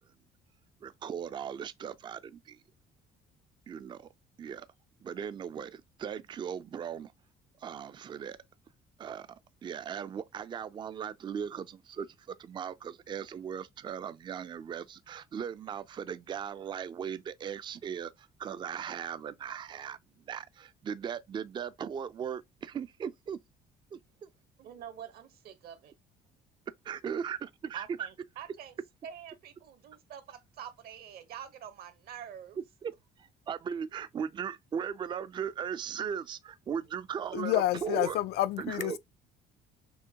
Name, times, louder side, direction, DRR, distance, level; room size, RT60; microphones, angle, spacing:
voice 1, 0.8-2.6 3.7-4.1 4.4-4.7 5.0-7.1 7.6-8.4 9.0-20.0 20.3-23.4 23.9-24.3 26.8-28.1 32.8-32.9 33.2-37.5 37.8-38.2 38.6-39.0, right 7 dB, 25° right, 0.3 m, -38 dB
voice 2, 24.6-26.0 27.7-28.8 29.0-32.6, right 9 dB, 65° right, 0.9 m, -46 dB
voice 3, 37.3-39.0, left 14 dB, 75° left, 0.4 m, -29 dB
6.1 x 2.1 x 2.8 m
cardioid pair, 110°, 17 cm